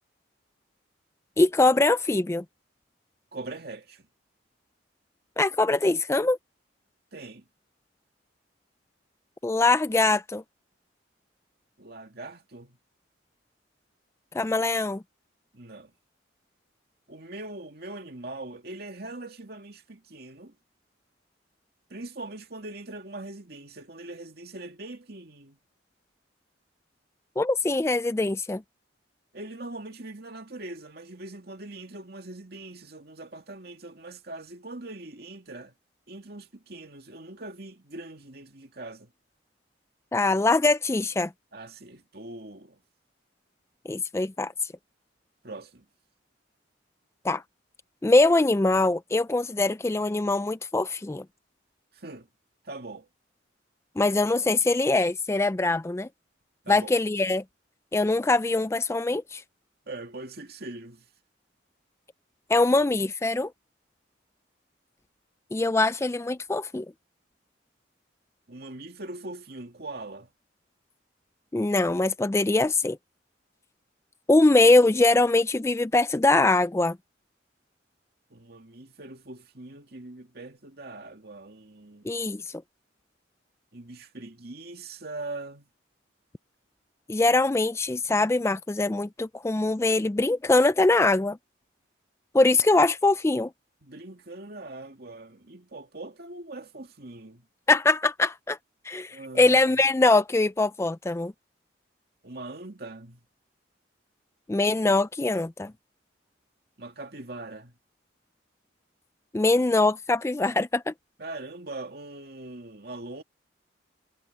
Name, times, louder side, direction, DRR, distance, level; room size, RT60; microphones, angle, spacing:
voice 1, 1.4-2.4 5.4-6.4 9.4-10.4 14.3-15.0 27.4-28.6 40.1-41.3 43.9-44.5 47.2-47.4 48.0-51.2 54.0-56.1 56.7-57.4 57.9-59.4 62.5-63.5 65.5-66.9 71.5-73.0 74.3-77.0 82.1-82.4 87.1-91.4 92.3-93.5 97.7-98.6 98.9-101.3 104.5-105.7 109.3-110.9, left 2 dB, 15° left, 0.3 m, -22 dB
voice 2, 3.3-4.1 7.1-7.5 11.8-12.8 15.5-15.9 17.1-20.6 21.9-25.6 29.3-35.7 36.1-39.1 41.5-42.8 45.4-45.9 51.9-52.3 52.6-53.1 56.6-57.0 59.9-61.1 68.5-70.3 78.3-82.2 83.7-85.7 93.8-97.5 99.1-99.6 102.2-103.2 106.8-107.7 111.2-113.2, right 2 dB, 55° right, 2.4 m, -41 dB
head